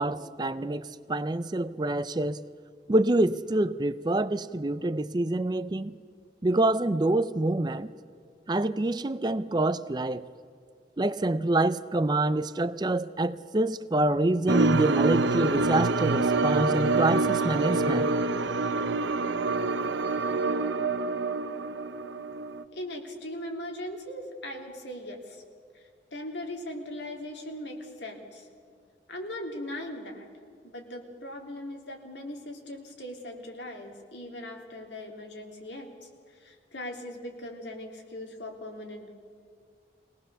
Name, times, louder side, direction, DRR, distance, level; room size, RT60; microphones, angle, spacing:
voice 1, 0.0-2.4 2.9-5.9 6.4-7.9 8.5-10.2 11.0-18.1, right 2 dB, 25° right, 0.5 m, -26 dB
sound 1, 14.5-22.6, right 3 dB, 85° right, 0.8 m, -26 dB
voice 2, 22.7-25.4 25.7-25.8 26.1-28.5 29.1-30.3 30.6-39.1, left 1 dB, 80° left, 3.2 m, -39 dB
23.0 x 18.5 x 6.9 m
head